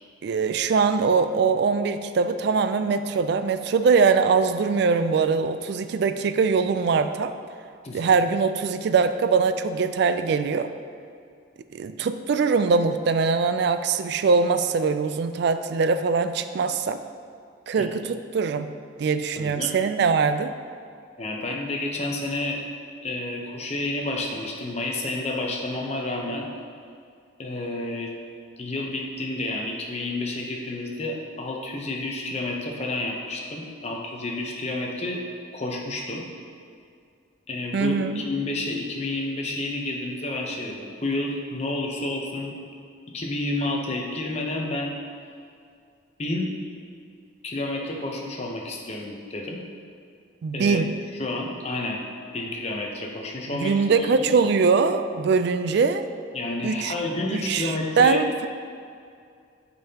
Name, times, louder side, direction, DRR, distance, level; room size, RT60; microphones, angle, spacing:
voice 1, 0.2-7.3 7.9-10.7 11.7-17.0 17.7-18.7 19.0-20.5 37.7-38.2 50.4-50.9 53.6-56.0 56.6-56.9 57.3-58.5, right 5 dB, 55° right, 10 dB, 0.3 m, -22 dB
voice 2, 19.4-19.7 21.2-22.6 23.0-26.5 27.4-28.1 28.6-35.2 35.5-36.2 37.5-42.6 43.1-44.9 46.2-46.5 47.4-49.6 50.5-50.8 51.2-52.0 52.3-54.4 56.3-58.2, left 2 dB, 35° left, 0 dB, 0.8 m, -30 dB
8.8 x 5.3 x 2.9 m, 2.3 s
head